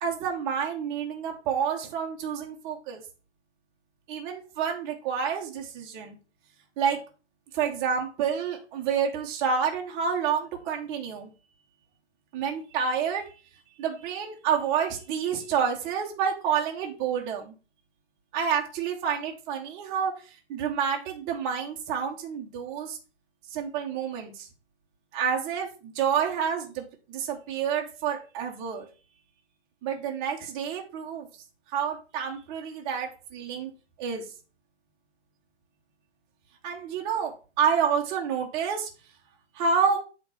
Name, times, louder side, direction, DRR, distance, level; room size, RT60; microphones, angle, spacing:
voice 1, 0.0-3.0 4.1-6.2 6.8-7.0 7.5-11.3 12.3-13.2 13.8-17.5 18.3-20.1 20.5-23.0 23.5-24.5 25.1-26.8 27.1-28.8 29.8-31.3 31.7-33.7 34.0-34.2 36.6-37.3 37.6-38.9 39.6-40.0, right 7 dB, 15° right, 1 dB, 0.7 m, -28 dB
7.7 x 3.0 x 5.2 m, 0.34 s
figure-of-eight pair, 135°, 35 cm